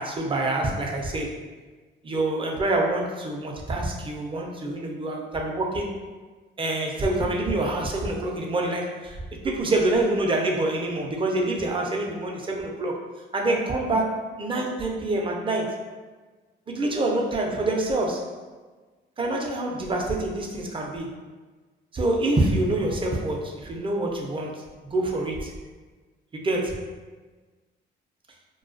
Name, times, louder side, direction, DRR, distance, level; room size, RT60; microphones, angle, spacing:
voice 1, 0.0-1.4 2.0-5.9 6.6-9.2 9.4-13.0 13.3-15.7 16.7-18.4 19.2-21.2 21.9-25.5 26.3-27.0, right 2 dB, 25° right, 0 dB, 0.5 m, -26 dB
2.2 x 2.2 x 2.5 m, 1.3 s
cardioid pair, 90°, 20 cm